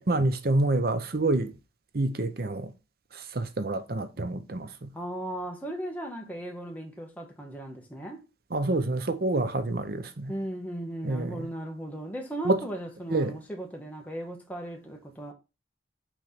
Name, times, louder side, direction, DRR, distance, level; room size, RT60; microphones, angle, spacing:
voice 1, 0.1-1.5 1.9-2.7 3.1-4.9 8.5-10.3 11.0-11.5 12.4-12.6 13.1-13.4, right 2 dB, 55° right, 0.8 m, -27 dB
voice 2, 4.9-8.2 10.3-15.3, right 1 dB, 10° left, 1.3 m, -37 dB
6.1 x 3.4 x 5.8 m
head